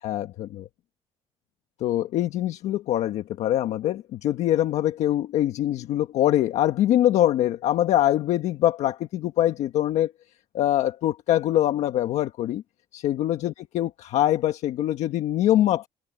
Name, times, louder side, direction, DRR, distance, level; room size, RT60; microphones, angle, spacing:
voice 1, 0.0-0.7 1.8-10.1 10.5-12.6 12.9-15.9, left 12 dB, 80° left, 1.5 m, -23 dB
open air
cardioid pair, 120°, 11 cm